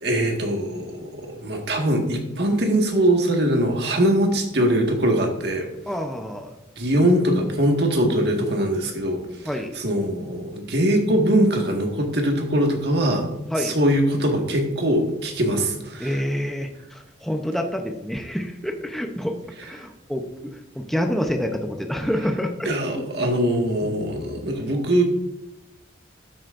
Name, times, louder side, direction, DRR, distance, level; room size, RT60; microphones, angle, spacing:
voice 1, 0.0-5.7 6.8-9.2 9.8-16.2 22.6-25.0, right 1 dB, 60° right, 2 dB, 1.7 m, -22 dB
voice 2, 5.9-6.5 9.4-9.7 13.5-13.7 16.0-19.4 19.6-20.2 20.7-22.7 22.9-23.0 23.8-24.0, equal, ahead, 3 dB, 0.7 m, -27 dB
12.5 x 8.1 x 2.6 m, 0.91 s
head